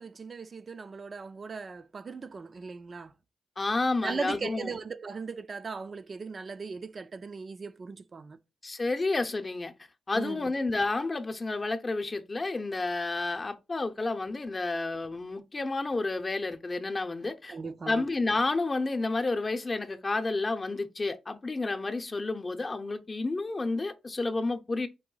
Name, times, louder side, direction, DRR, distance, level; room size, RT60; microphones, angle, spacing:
voice 1, 0.0-3.1 4.0-8.4 10.1-10.5 17.5-18.0, right 4 dB, 45° right, 0.5 m, -38 dB
voice 2, 3.6-4.7 8.6-9.7 10.1-17.6 17.9-24.9, left 3 dB, 35° left, 0.7 m, -30 dB
4.8 x 2.6 x 3.8 m
cardioid pair, 70°, 0 cm